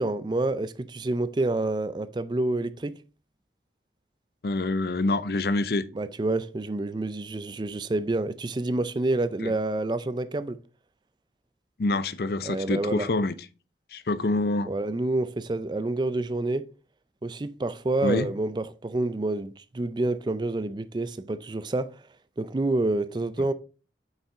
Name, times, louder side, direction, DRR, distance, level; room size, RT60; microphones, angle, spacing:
voice 1, 0.0-3.0 5.9-10.6 12.4-13.1 14.6-16.7 17.2-22.0 22.4-23.5, right 2 dB, 25° right, 0.4 m, -28 dB
voice 2, 4.4-5.9 9.4-9.5 11.8-13.4 13.9-14.7 18.0-18.3, left 2 dB, 60° left, 0.5 m, -26 dB
5.6 x 5.6 x 3.7 m
head